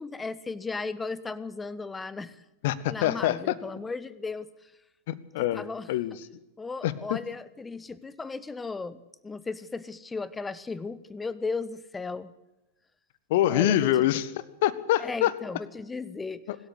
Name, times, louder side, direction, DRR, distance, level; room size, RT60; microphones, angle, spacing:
voice 1, 0.0-2.4 2.9-4.5 5.5-5.9 6.6-12.3 13.5-13.9 15.0-16.4, left 4 dB, 10° left, 18 dB, 1.2 m, -35 dB
voice 2, 2.6-3.5 5.1-6.2 6.8-7.2 13.3-14.3 14.6-15.3 16.5-16.6, left 13 dB, 50° left, 18 dB, 1.4 m, -25 dB
26.0 x 13.0 x 8.3 m, 0.94 s
figure-of-eight pair, 90°, 0 cm